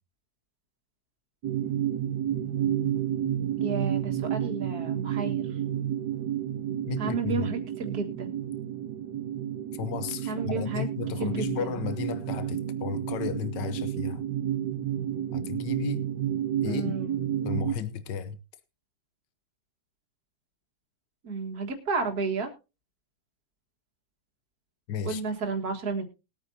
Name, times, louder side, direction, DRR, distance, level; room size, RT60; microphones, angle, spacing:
sound 1, 1.4-17.7, right 10 dB, 80° right, 1.5 m, -31 dB
voice 1, 3.6-5.5 7.0-8.3 10.3-10.9 11.2-11.8 16.7-17.3 21.2-22.5 25.0-26.0, right 4 dB, 60° right, 2.2 m, -32 dB
voice 2, 6.9-7.5 9.7-14.2 15.3-16.0 16.6-16.9 17.4-18.4 24.9-25.2, left 7 dB, 85° left, 1.5 m, -34 dB
20.5 x 8.7 x 2.7 m
omnidirectional pair, 1.8 m